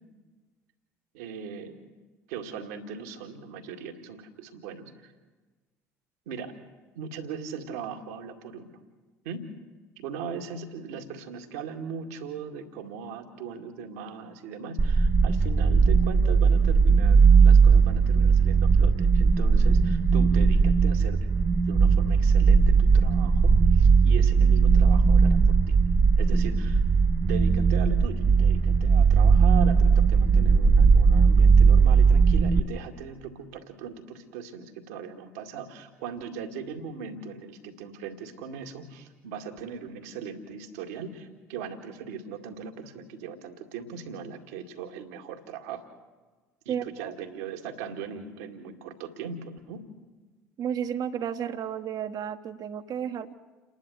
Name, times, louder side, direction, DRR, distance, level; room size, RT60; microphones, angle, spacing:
voice 1, 1.1-1.8 2.3-5.1 6.3-6.5 7.0-8.7 9.2-9.4 10.0-21.2 21.7-25.8 26.2-26.8 27.2-45.9 46.7-49.8, right 6 dB, 70° right, 4 dB, 2.1 m, -39 dB
sound 1, 14.8-32.6, right 5 dB, 30° right, 1.0 m, -19 dB
voice 2, 46.7-47.1 50.6-53.3, right 8 dB, 50° right, 8 dB, 1.4 m, -32 dB
29.0 x 11.5 x 8.0 m, 1.3 s
figure-of-eight pair, 55°, 8 cm